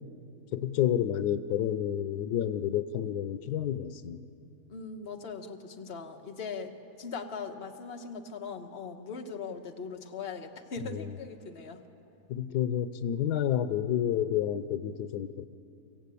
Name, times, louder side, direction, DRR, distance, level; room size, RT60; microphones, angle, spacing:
voice 1, 0.5-4.2 10.9-11.1 12.3-15.5, left 10 dB, 85° left, 12 dB, 1.3 m, -30 dB
voice 2, 4.7-11.8, left 5 dB, 40° left, 4 dB, 1.4 m, -40 dB
24.5 x 15.5 x 8.4 m, 2.6 s
omnidirectional pair, 1.7 m